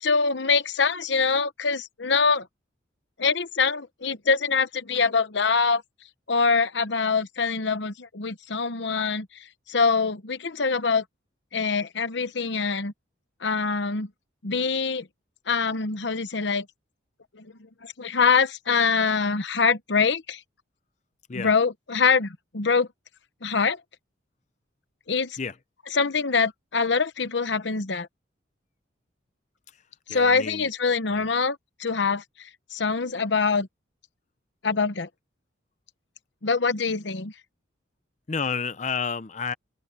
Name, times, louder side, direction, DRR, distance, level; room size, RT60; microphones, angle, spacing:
voice 1, 0.0-2.5 3.2-5.8 6.3-9.3 9.7-11.0 11.5-12.9 13.4-14.1 14.4-15.1 15.5-16.7 17.3-17.5 17.8-20.4 21.3-22.9 23.4-23.8 25.1-25.4 25.9-28.1 30.1-33.7 34.6-35.1 36.4-37.3, left 5 dB, 65° left, 0.9 m, -24 dB
voice 2, 30.1-30.7 31.1-31.2 38.3-39.5, left 5 dB, 35° left, 0.6 m, -30 dB
open air
head